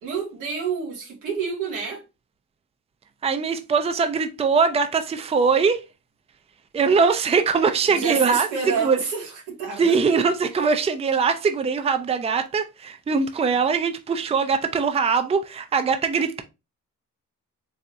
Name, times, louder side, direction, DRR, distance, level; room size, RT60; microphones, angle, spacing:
voice 1, 0.0-2.0 7.9-10.0, right 5 dB, 90° right, 2.0 m, -29 dB
voice 2, 3.2-5.8 6.7-8.5 8.8-9.0 9.8-16.4, right 5 dB, 20° right, 0.5 m, -21 dB
4.1 x 3.4 x 2.5 m
cardioid pair, 90°, 30 cm